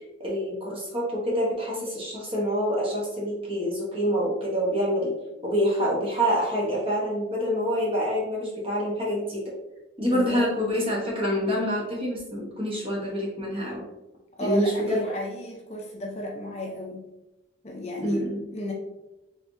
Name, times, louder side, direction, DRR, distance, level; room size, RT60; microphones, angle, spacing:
voice 1, 0.2-5.1 5.4-9.4 10.0-13.8 14.4-15.0 18.0-18.4, equal, 30° right, -4 dB, 1.1 m, -26 dB
voice 2, 10.0-10.5 14.4-17.1 17.6-18.7, equal, 35° left, 0 dB, 0.6 m, -33 dB
3.5 x 3.4 x 2.6 m, 0.98 s
head